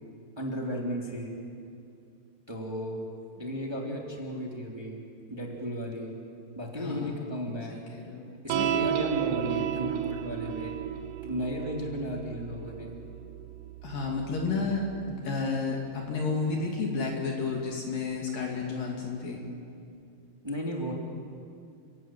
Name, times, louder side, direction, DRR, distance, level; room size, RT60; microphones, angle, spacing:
voice 1, 0.4-1.3 2.5-3.1 3.4-5.0 5.3-6.1 6.5-7.8 8.4-10.7 11.2-13.0 20.4-20.9, equal, 5° right, -1 dB, 2.5 m, -34 dB
voice 2, 6.8-7.1 7.9-8.2 13.8-19.4, left 4 dB, 60° left, 0 dB, 3.9 m, -31 dB
sound 1, 8.5-15.2, right 9 dB, 75° right, 1.9 m, -33 dB
30.0 x 17.0 x 9.2 m, 2.5 s
omnidirectional pair, 4.6 m